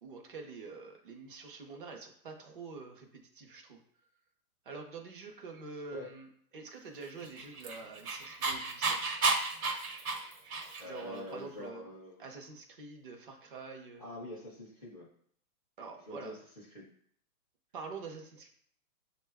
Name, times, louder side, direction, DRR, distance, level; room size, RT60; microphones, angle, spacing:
voice 1, 0.0-3.8 4.7-6.3 6.5-9.0 10.8-11.9 12.2-14.1 15.8-16.3 17.7-18.5, right 4 dB, 35° right, 1 dB, 0.5 m, -46 dB
Dog, 7.2-11.0, right 3 dB, 70° right, 0.9 m, -32 dB
voice 2, 10.8-12.2 14.0-15.1 16.0-16.9, left 1 dB, 25° left, -6 dB, 0.5 m, -45 dB
6.6 x 2.2 x 3.4 m, 0.64 s
hypercardioid pair, 175°, 45 cm